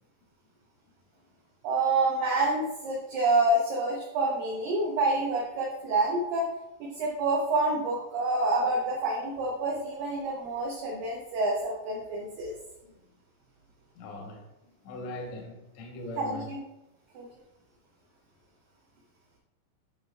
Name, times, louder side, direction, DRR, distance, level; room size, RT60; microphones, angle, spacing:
voice 1, 1.6-6.5 6.8-12.5 16.2-16.6 17.1-17.3, right 2 dB, 70° right, -2 dB, 2.3 m, -27 dB
voice 2, 13.9-16.5, left 2 dB, 85° left, 1 dB, 1.5 m, -41 dB
9.3 x 5.7 x 2.3 m, 0.92 s
omnidirectional pair, 4.8 m